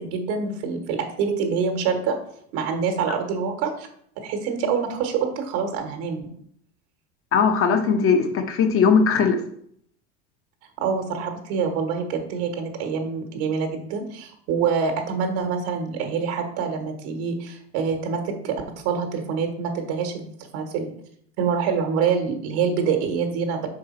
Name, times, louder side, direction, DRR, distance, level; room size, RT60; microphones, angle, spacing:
voice 1, 0.0-2.2 2.5-3.9 4.2-6.3 10.8-20.9 21.4-23.7, right 6 dB, 65° right, 4 dB, 1.4 m, -26 dB
voice 2, 7.3-9.4, left 5 dB, 40° left, 7 dB, 1.1 m, -19 dB
5.5 x 4.8 x 4.2 m, 0.65 s
hypercardioid pair, 85°, 34 cm